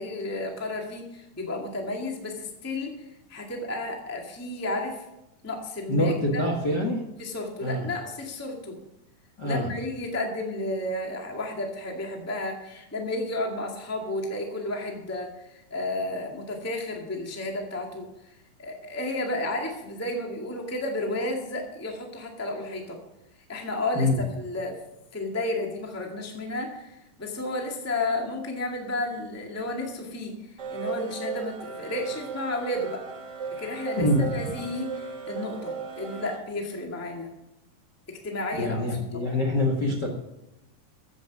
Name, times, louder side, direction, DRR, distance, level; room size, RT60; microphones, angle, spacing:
voice 1, 0.0-5.0 5.4-6.5 7.2-8.8 9.4-23.0 23.5-24.1 24.4-24.8 25.1-33.0 33.6-34.1 34.3-37.3 38.1-38.8 39.1-39.3, left 2 dB, 5° left, 1 dB, 1.2 m, -32 dB
voice 2, 5.9-7.0 7.6-7.9 9.4-9.7 24.0-24.2 34.0-34.6 38.6-40.1, left 1 dB, 40° left, 0 dB, 1.7 m, -25 dB
sound 1, 30.6-36.4, right 5 dB, 35° right, 2.3 m, -35 dB
15.0 x 8.2 x 6.0 m, 0.89 s
omnidirectional pair, 4.0 m